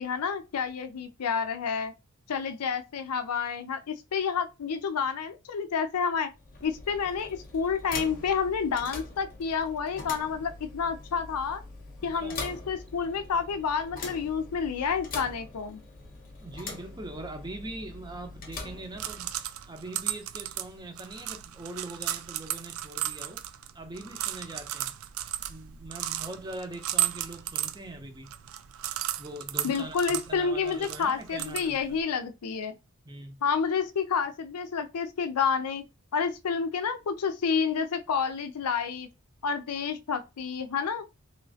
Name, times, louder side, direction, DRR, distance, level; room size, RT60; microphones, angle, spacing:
voice 1, 0.0-1.9 2.3-6.3 6.6-11.6 12.0-15.8 29.6-32.7 33.4-35.8 36.1-39.1 39.4-41.0, left 6 dB, 85° left, 0.5 m, -29 dB
sound 1, 6.3-19.6, left 3 dB, 40° left, 0.7 m, -43 dB
voice 2, 12.0-12.5 16.4-19.4 19.7-23.4 23.7-24.9 25.5-28.3 29.2-31.8 33.0-33.4, right 2 dB, 20° right, 0.5 m, -42 dB
sound 2, 18.7-32.0, right 13 dB, 65° right, 0.3 m, -35 dB
3.1 x 3.0 x 2.7 m
head